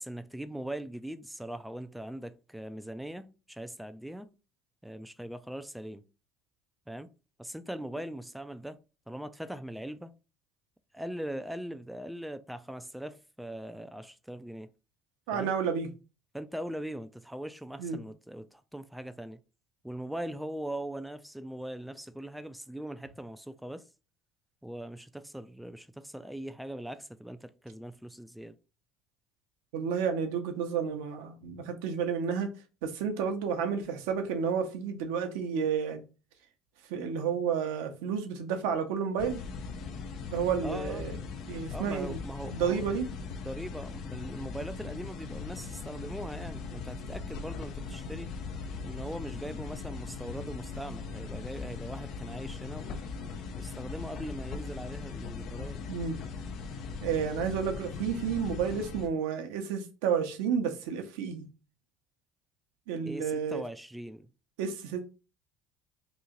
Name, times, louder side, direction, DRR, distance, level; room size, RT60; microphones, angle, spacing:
voice 1, 0.0-4.3 4.8-6.0 6.9-7.1 7.4-8.8 9.1-10.1 10.9-14.7 15.3-15.5 16.3-19.4 19.8-23.8 24.6-28.6 40.6-41.1 41.7-42.8 43.3-48.3 48.8-53.0 53.6-55.8 63.0-64.3, right 1 dB, ahead, 0.4 m, -40 dB
voice 2, 15.3-15.9 17.8-18.0 29.7-32.5 32.8-36.0 36.9-39.4 40.3-41.2 41.5-42.2 42.4-43.0 55.9-56.2 57.0-61.5 62.9-63.6 64.6-65.1, right 7 dB, 80° right, 0.7 m, -31 dB
sound 1, 39.2-59.1, left 5 dB, 60° left, 0.6 m, -40 dB
3.0 x 2.7 x 3.7 m
supercardioid pair, 85°, 0 cm